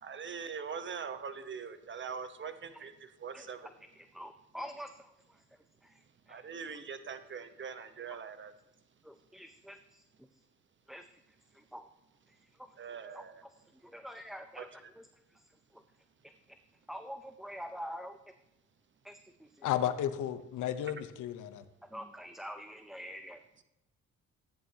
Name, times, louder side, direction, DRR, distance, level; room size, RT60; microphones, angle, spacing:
voice 1, 0.0-3.7 6.3-8.5 12.8-13.4 14.6-14.9 23.6-23.7, right 6 dB, 40° right, 10 dB, 1.0 m, -42 dB
voice 2, 4.0-4.9 6.3-6.4 9.0-9.5 10.9-11.0 11.7-11.8 13.1-13.2 13.9-14.7 16.9-18.2 19.0-19.2 21.9-23.4, equal, ahead, 8 dB, 0.5 m, -44 dB
voice 3, 19.6-21.6, left 11 dB, 80° left, 11 dB, 0.9 m, -33 dB
14.0 x 9.5 x 2.9 m, 0.99 s
cardioid pair, 90°, 30 cm